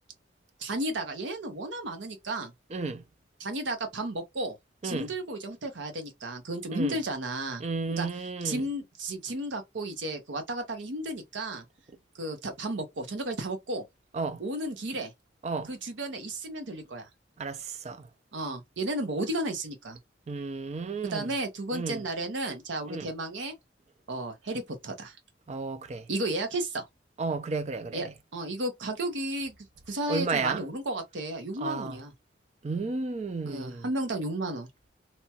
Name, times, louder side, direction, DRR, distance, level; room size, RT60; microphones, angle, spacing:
voice 1, 0.6-2.5 3.4-4.6 4.8-7.6 8.0-8.1 8.4-11.6 12.1-13.8 14.4-15.1 15.7-17.1 18.3-20.0 21.0-23.6 24.1-25.2 26.1-26.9 27.9-29.5 29.9-32.1 33.4-34.7, right 1 dB, 75° right, 0.7 m, -33 dB
voice 2, 2.7-3.0 4.8-5.1 6.7-7.0 7.6-8.7 14.1-14.4 15.4-15.7 17.4-18.1 20.3-21.3 21.7-22.0 22.9-23.1 25.5-26.0 27.2-28.1 30.1-30.6 31.6-32.0 32.6-33.9, right 4 dB, 35° right, 0.4 m, -33 dB
2.9 x 2.2 x 2.8 m
head